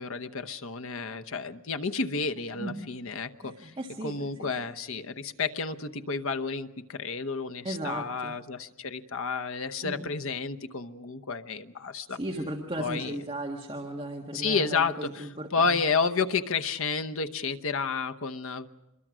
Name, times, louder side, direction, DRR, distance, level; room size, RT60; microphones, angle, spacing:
voice 1, 0.0-3.7 4.0-12.2 12.8-13.1 14.3-18.7, left 4 dB, 70° left, 7 dB, 0.9 m, -31 dB
voice 2, 3.4-4.1 4.4-4.5 7.6-8.3 9.8-10.1 12.1-15.8, right 1 dB, 25° right, -1 dB, 1.7 m, -36 dB
25.5 x 22.5 x 6.2 m, 0.99 s
head